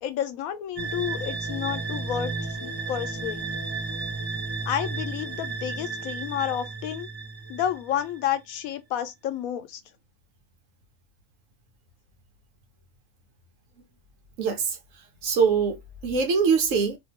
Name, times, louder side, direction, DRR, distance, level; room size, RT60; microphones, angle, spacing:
voice 1, 0.0-3.6 4.7-7.1 7.5-9.8, left 10 dB, 90° left, 1.1 m, -30 dB
sound 1, 0.8-8.3, right 4 dB, 25° right, 0.6 m, -33 dB
voice 2, 14.4-14.8 15.2-17.0, right 5 dB, 70° right, 1.2 m, -23 dB
2.7 x 2.6 x 2.8 m
omnidirectional pair, 1.4 m